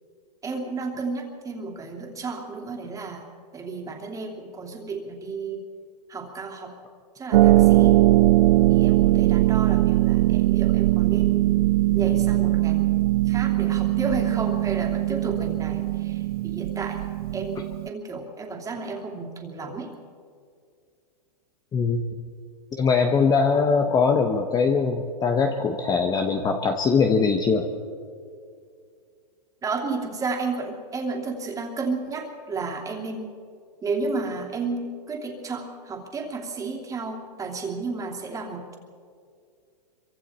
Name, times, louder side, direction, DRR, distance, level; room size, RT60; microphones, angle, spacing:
voice 1, 0.4-3.2 3.5-5.6 6.1-6.8 7.2-8.0 8.7-11.5 11.9-12.9 13.3-17.0 17.3-17.6 17.8-19.9 29.6-33.3 33.8-38.7, right 4 dB, 15° right, 1 dB, 3.0 m, -32 dB
Harp, 7.3-17.9, right 17 dB, 60° right, 0.5 m, -20 dB
voice 2, 22.7-27.7, left 5 dB, 20° left, 5 dB, 1.1 m, -21 dB
25.0 x 24.0 x 4.4 m, 2.2 s
hypercardioid pair, 135°, 21 cm